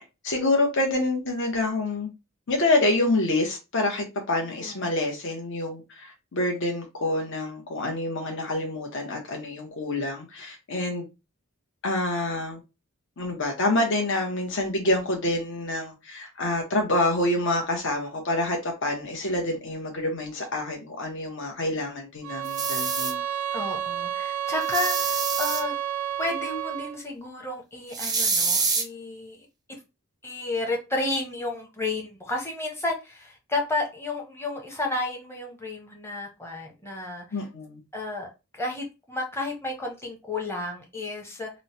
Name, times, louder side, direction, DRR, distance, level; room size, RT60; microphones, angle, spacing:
voice 1, 0.2-2.1 2.5-11.1 11.8-12.6 13.2-23.2 37.3-37.8, left 2 dB, 60° left, 0.8 m, -27 dB
voice 2, 4.6-4.9 23.5-25.8 26.2-29.5 30.2-37.2 37.9-38.3 38.5-41.5, left 2 dB, 10° left, 0.8 m, -32 dB
sound 1, 22.2-27.0, right 10 dB, 85° right, 0.4 m, -30 dB
sound 2, 22.5-23.1 24.6-25.6 27.9-28.8, right 4 dB, 20° right, 0.5 m, -26 dB
3.0 x 2.1 x 4.0 m
head